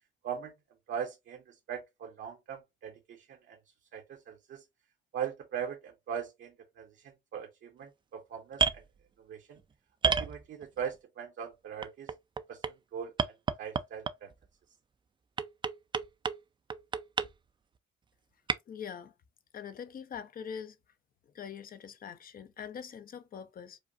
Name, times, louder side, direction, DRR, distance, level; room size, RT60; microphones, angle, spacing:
voice 1, 0.9-1.4 1.7-3.6 3.9-4.6 5.1-6.9 7.3-8.8 9.3-9.6 10.0-12.1 12.5-12.6 12.9-13.1 13.6-14.3, right 8 dB, 65° right, 0.8 m, -40 dB
sound 1, 8.5-8.8 10.0-10.8 11.8-12.7 13.2-14.3 15.4-16.4 16.7-17.3 18.5-18.6, right 5 dB, 25° right, 0.4 m, -29 dB
voice 2, 18.7-19.1 19.5-20.8 21.3-23.8, left 7 dB, 45° left, 0.6 m, -43 dB
4.9 x 2.1 x 2.6 m
cardioid pair, 90°, 20 cm